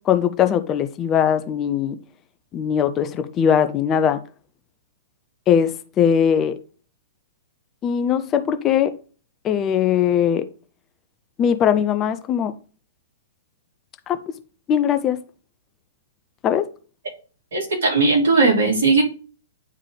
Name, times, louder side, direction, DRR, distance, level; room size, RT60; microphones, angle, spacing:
voice 1, 0.1-2.0 2.5-4.2 5.5-6.6 7.8-8.9 9.4-10.4 11.4-12.5 14.1-14.2 14.7-15.2 16.4-16.7, left 8 dB, 25° left, 0.5 m, -20 dB
voice 2, 17.5-19.0, right 3 dB, 60° right, 3.2 m, -17 dB
9.6 x 3.7 x 3.3 m
figure-of-eight pair, 110°, 0 cm